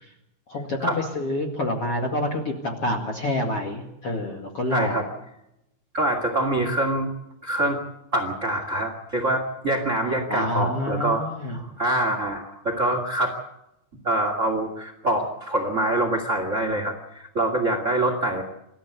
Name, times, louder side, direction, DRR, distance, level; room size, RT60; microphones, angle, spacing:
voice 1, 0.5-5.0 10.3-11.6, left 1 dB, 45° left, 2 dB, 2.3 m, -27 dB
voice 2, 4.7-5.1 5.9-7.1 7.4-7.8 8.1-11.2 11.5-13.4 14.0-18.4, right 1 dB, 30° right, 6 dB, 1.5 m, -25 dB
26.5 x 14.0 x 8.2 m, 0.86 s
omnidirectional pair, 5.3 m